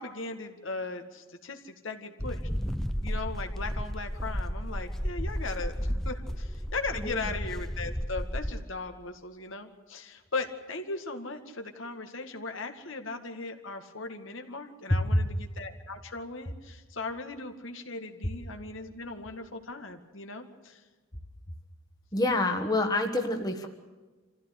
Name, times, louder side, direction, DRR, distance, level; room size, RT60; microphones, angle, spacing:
voice 1, 0.0-2.4 3.0-20.8, left 3 dB, 70° left, 5 dB, 2.1 m, -38 dB
sound 1, 2.2-8.6, equal, ahead, 0.7 m, -33 dB
voice 2, 6.9-7.3 14.9-15.2 22.1-23.7, left 2 dB, 20° left, 4 dB, 1.5 m, -27 dB
26.0 x 15.5 x 8.4 m, 1.3 s
head